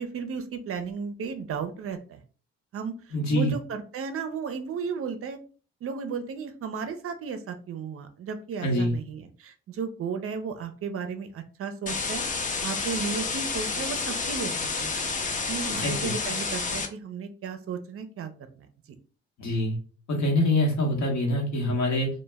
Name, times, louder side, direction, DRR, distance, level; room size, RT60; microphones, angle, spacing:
voice 1, 0.0-2.2 2.7-5.4 5.8-12.3 12.6-15.1 15.5-18.7, right 6 dB, 50° right, 8 dB, 0.4 m, -34 dB
voice 2, 3.1-3.5 8.6-8.9 15.7-16.1 19.4-19.8 20.1-22.1, left 1 dB, 65° left, 0 dB, 0.9 m, -25 dB
sound 1, 11.9-16.9, left 4 dB, 25° left, 0.4 m, -30 dB
2.1 x 2.0 x 3.3 m, 0.39 s
cardioid pair, 90°, 30 cm